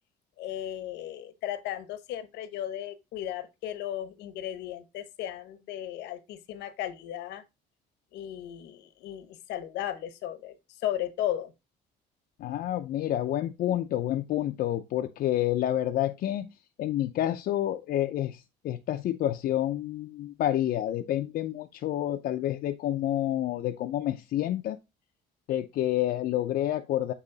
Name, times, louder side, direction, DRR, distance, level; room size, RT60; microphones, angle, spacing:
voice 1, 0.4-7.4 8.1-11.5, left 12 dB, 85° left, 0.9 m, -35 dB
voice 2, 12.4-16.5 16.8-24.8 25.5-27.1, left 12 dB, 65° left, 0.5 m, -29 dB
8.3 x 3.0 x 3.9 m
cardioid pair, 110°, 17 cm